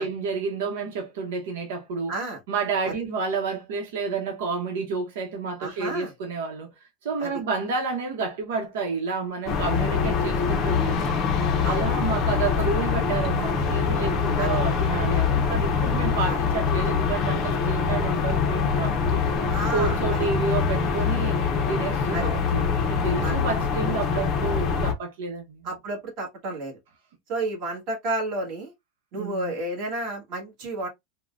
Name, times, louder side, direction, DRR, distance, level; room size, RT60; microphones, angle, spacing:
voice 1, 0.0-2.1 2.5-6.7 7.0-11.1 11.6-19.2 19.7-21.4 21.7-25.7 29.1-29.5, right 4 dB, 75° right, 0.9 m, -30 dB
voice 2, 2.1-2.4 2.8-2.9 5.6-6.1 7.2-7.4 11.6-11.9 14.4-14.6 16.3-16.4 19.5-20.2 22.1-22.3 23.2-23.4 25.6-26.7 27.3-28.7 29.1-30.9, right 2 dB, 35° right, 1.4 m, -31 dB
sound 1, 9.5-24.9, left 6 dB, 25° left, 0.5 m, -24 dB
3.7 x 2.1 x 2.4 m
supercardioid pair, 180°, 0 cm